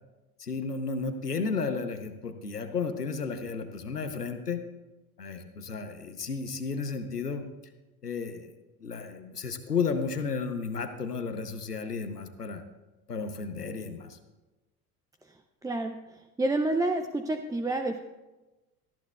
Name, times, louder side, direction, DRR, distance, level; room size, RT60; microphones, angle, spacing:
voice 1, 0.4-4.6 5.2-7.5 8.0-8.5 8.8-12.6 13.1-14.2, left 5 dB, 90° left, 8 dB, 0.9 m, -33 dB
voice 2, 15.6-18.0, right 2 dB, 10° right, 6 dB, 0.5 m, -29 dB
18.0 x 13.5 x 2.3 m, 1.1 s
figure-of-eight pair, 65°, 45 cm